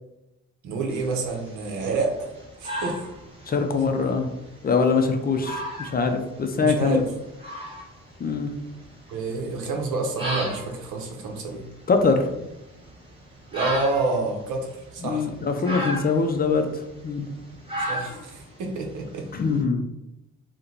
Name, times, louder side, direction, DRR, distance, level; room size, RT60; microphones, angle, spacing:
voice 1, 0.6-2.3 2.6-3.0 6.6-7.1 9.1-11.7 13.5-15.3 17.8-19.3, right 3 dB, 85° right, 2 dB, 0.8 m, -28 dB
sound 1, 0.9-19.6, equal, 20° right, 1.2 m, -37 dB
voice 2, 3.5-4.3 4.6-7.0 8.2-8.5 11.9-12.3 15.0-17.3 19.3-19.8, left 4 dB, 30° left, 5 dB, 0.4 m, -23 dB
3.0 x 2.2 x 3.8 m, 0.90 s
cardioid pair, 90°, 30 cm